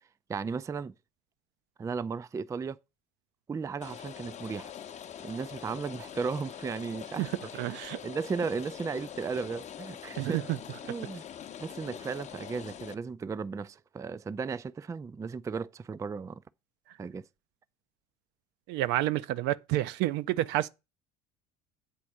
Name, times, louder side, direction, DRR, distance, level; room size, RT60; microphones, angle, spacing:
voice 1, 0.3-0.9 1.8-2.8 3.5-4.7 5.2-7.3 7.9-10.4 10.9-11.2 11.6-16.4 17.0-17.2, right 5 dB, 15° right, 0.4 m, -35 dB
Rain, 3.8-12.9, left 9 dB, 35° left, 0.8 m, -44 dB
voice 2, 7.2-8.0 10.2-10.6 18.7-20.7, right 15 dB, 55° right, 0.6 m, -29 dB
8.6 x 4.2 x 6.1 m
hypercardioid pair, 65°, 21 cm